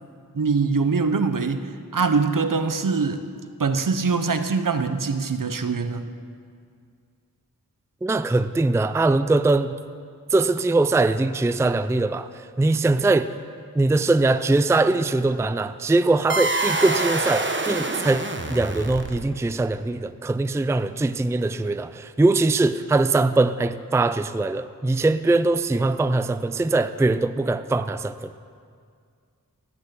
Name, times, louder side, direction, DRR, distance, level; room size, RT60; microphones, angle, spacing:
voice 1, 0.3-3.2 3.6-6.1, right 4 dB, 65° right, 10 dB, 0.8 m, -23 dB
voice 2, 8.0-9.7 10.3-12.3 12.6-13.3 13.8-28.1, right 2 dB, 10° right, 13 dB, 0.4 m, -21 dB
sound 1, 16.3-19.4, right 2 dB, 35° right, 1.0 m, -26 dB
17.0 x 6.3 x 8.3 m, 2.2 s
wide cardioid pair, 40°, 35 cm